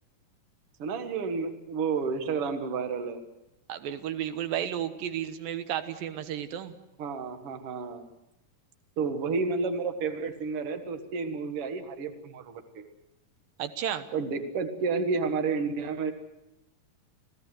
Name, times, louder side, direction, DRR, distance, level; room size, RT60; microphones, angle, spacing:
voice 1, 0.8-3.2 7.0-8.1 9.0-12.9 14.1-16.1, right 4 dB, 50° right, 6 dB, 2.3 m, -31 dB
voice 2, 3.7-6.7 13.6-14.1, right 10 dB, 90° right, 10 dB, 2.9 m, -33 dB
27.5 x 16.5 x 7.8 m, 0.93 s
omnidirectional pair, 3.9 m